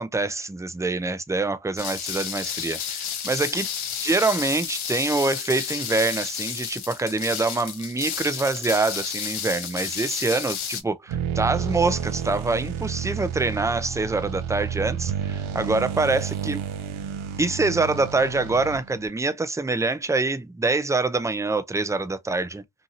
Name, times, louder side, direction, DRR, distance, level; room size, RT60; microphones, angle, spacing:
voice 1, 0.0-3.7 4.0-16.6 17.4-22.6, right 3 dB, 5° right, 0.3 m, -25 dB
sound 1, 1.8-10.8, left 8 dB, 80° left, 0.7 m, -31 dB
sound 2, 11.1-19.1, right 8 dB, 80° right, 0.5 m, -30 dB
2.7 x 2.7 x 2.5 m
cardioid pair, 65°, 48 cm